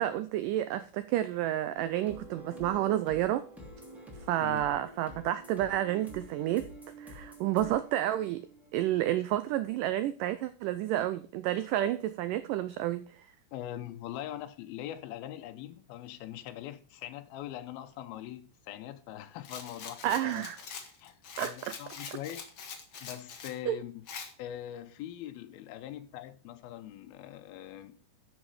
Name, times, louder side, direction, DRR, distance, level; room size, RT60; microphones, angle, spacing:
voice 1, 0.0-3.4 4.3-6.7 7.0-8.4 8.7-13.3 20.0-20.6 21.4-21.5 23.7-23.8, right 13 dB, 85° right, 1.9 m, -30 dB
sound 1, 1.8-9.1, right 1 dB, ahead, 1.8 m, -48 dB
voice 2, 13.5-20.5 21.0-22.4 23.0-23.9 24.4-27.9, left 12 dB, 80° left, 2.6 m, -42 dB
Rattle, 19.4-23.6 24.1-24.3, left 6 dB, 55° left, 1.4 m, -44 dB
11.5 x 6.4 x 4.8 m
omnidirectional pair, 4.4 m